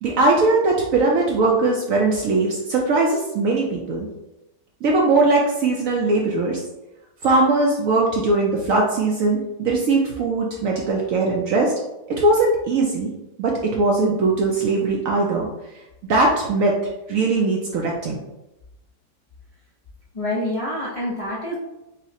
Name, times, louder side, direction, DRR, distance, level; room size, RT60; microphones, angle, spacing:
voice 1, 0.0-4.1 4.8-6.6 7.2-11.7 12.1-13.1 13.4-15.5 16.1-16.8 17.1-18.2, right 3 dB, 70° right, -1 dB, 0.8 m, -20 dB
voice 2, 20.1-21.5, left 1 dB, 45° left, -7 dB, 0.4 m, -26 dB
5.4 x 2.0 x 2.7 m, 0.94 s
omnidirectional pair, 1.8 m